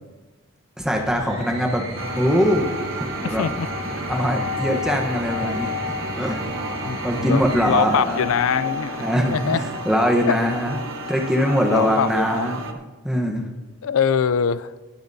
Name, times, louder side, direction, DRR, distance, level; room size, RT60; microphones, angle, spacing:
voice 1, 0.8-1.8 2.1-2.7 3.2-3.5 4.1-6.4 7.0-8.3 9.0-10.8 11.1-12.6 13.0-13.5, equal, 5° right, 1 dB, 1.0 m, -22 dB
sound 1, 0.8-9.2 10.4-11.1, equal, 25° right, 1.8 m, -36 dB
sound 2, 2.0-12.7, left 1 dB, 55° right, 1.0 m, -31 dB
voice 2, 3.2-3.7 6.8-9.0 9.3-9.6 10.3-10.4 11.7-12.5 13.8-14.7, left 7 dB, 70° left, 16 dB, 0.4 m, -23 dB
19.5 x 8.9 x 2.7 m, 1.2 s
head